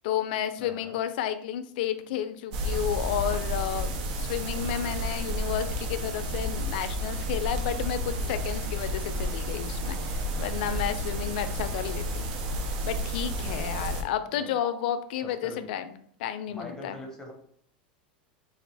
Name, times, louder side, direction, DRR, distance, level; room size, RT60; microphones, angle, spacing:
voice 1, 0.0-12.3 12.8-15.8 16.2-17.0, left 10 dB, 65° left, 11 dB, 0.4 m, -32 dB
voice 2, 0.6-1.0 13.4-14.5 15.2-15.7 16.5-17.3, left 2 dB, 10° left, 1 dB, 0.8 m, -44 dB
sound 1, 2.5-14.0, right 1 dB, 60° right, 0.7 m, -31 dB
4.1 x 2.4 x 3.3 m, 0.62 s
supercardioid pair, 120°, 5 cm